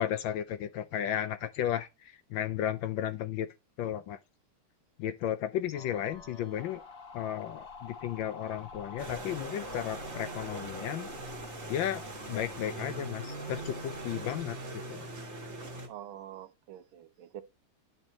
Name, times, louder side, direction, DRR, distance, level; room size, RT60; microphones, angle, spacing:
voice 1, 0.0-3.5 3.8-4.2 5.0-6.8 7.1-11.1 11.7-12.0 12.3-15.0, left 10 dB, 75° left, 1.2 m, -34 dB
sound 1, 5.7-14.7, left 4 dB, 45° left, 1.4 m, -49 dB
sound 2, 9.0-15.9, right 2 dB, 35° right, 1.6 m, -41 dB
voice 2, 15.9-17.4, right 11 dB, 75° right, 1.4 m, -46 dB
11.0 x 4.4 x 3.0 m
omnidirectional pair, 2.4 m